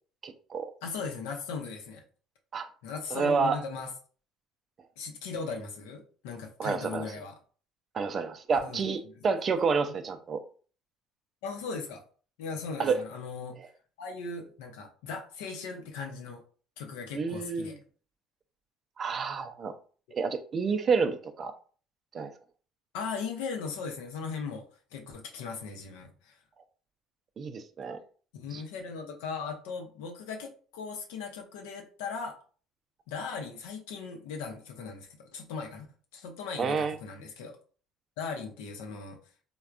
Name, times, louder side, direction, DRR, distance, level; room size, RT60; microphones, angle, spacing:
voice 1, 0.2-0.7 2.5-2.7 3.1-3.6 6.6-7.1 7.9-10.4 12.8-13.0 17.1-17.8 19.0-19.8 20.1-21.5 22.1-22.3 27.4-28.0 28.5-28.6 36.6-37.0, right 5 dB, 40° right, 0.4 m, -29 dB
voice 2, 0.8-2.0 2.8-3.9 5.0-7.4 8.6-8.8 11.4-12.0 12.4-13.6 14.0-16.4 16.8-17.8 22.9-24.6 24.9-26.4 28.3-32.4 33.1-35.9 36.1-37.6 38.2-39.2, left 5 dB, 80° left, 0.6 m, -38 dB
3.3 x 2.2 x 2.4 m
supercardioid pair, 75°, 0 cm